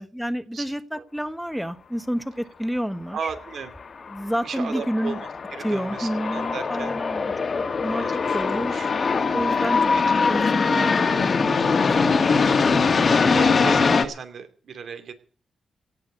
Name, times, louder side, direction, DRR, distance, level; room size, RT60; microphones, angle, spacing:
voice 1, 0.0-3.3 4.1-5.2 5.6-7.3 7.8-8.1 8.3-8.7 9.3-9.9 10.3-11.0 11.6-12.2, equal, ahead, 11 dB, 1.3 m, -29 dB
voice 2, 3.1-3.7 4.4-5.1 5.5-7.0 8.0-8.9 10.1-10.3 13.2-15.1, right 6 dB, 80° right, 8 dB, 2.7 m, -35 dB
sound 1, 3.4-14.1, left 4 dB, 55° left, 1.9 m, -22 dB
17.0 x 6.4 x 9.3 m, 0.42 s
cardioid pair, 70°, 0 cm